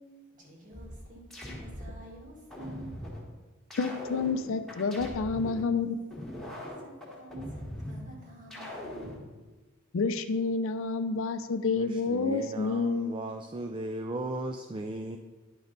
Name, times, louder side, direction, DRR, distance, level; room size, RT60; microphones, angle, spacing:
voice 1, 0.3-2.9 6.8-9.3, right 1 dB, 40° right, -1 dB, 1.9 m, -49 dB
sound 1, 0.7-2.0 2.5-3.2 3.7-5.6 6.1-8.0 8.5-9.2, left 1 dB, ahead, 1.6 m, -41 dB
voice 2, 3.8-6.0 9.9-13.1, left 4 dB, 65° left, 10 dB, 0.5 m, -29 dB
voice 3, 11.7-15.2, right 2 dB, 25° right, 6 dB, 0.3 m, -37 dB
10.0 x 5.3 x 3.9 m, 1.3 s
head